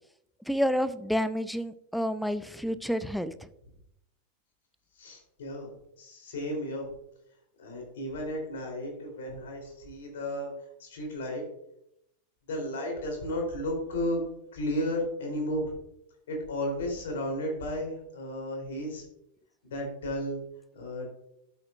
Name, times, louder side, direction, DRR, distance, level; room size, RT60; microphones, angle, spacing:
voice 1, 0.5-3.3, equal, ahead, 15 dB, 0.5 m, -29 dB
voice 2, 4.9-6.9 7.6-11.4 12.5-14.2 14.5-15.7 16.3-19.0 19.6-20.4 20.7-21.1, left 1 dB, 60° left, 1 dB, 3.4 m, -33 dB
12.5 x 7.3 x 2.5 m, 0.79 s
figure-of-eight pair, 90°, 0 cm